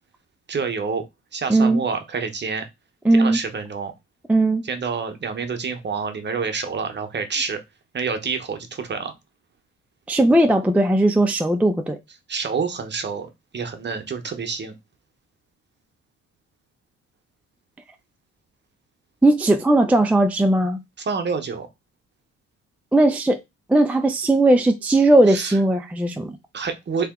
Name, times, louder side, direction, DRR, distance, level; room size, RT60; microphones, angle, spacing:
voice 1, 0.5-1.1 1.3-2.7 3.2-3.9 4.6-7.6 7.9-9.1 12.3-14.8 21.0-21.7 25.3-25.6 26.5-27.1, right 5 dB, 35° right, 0.9 m, -28 dB
voice 2, 1.5-1.8 3.0-3.4 4.3-4.6 10.1-12.0 19.2-20.8 22.9-23.4 23.7-26.4, right 1 dB, 5° right, 0.4 m, -18 dB
3.4 x 2.9 x 3.6 m
cardioid pair, 90°, 30 cm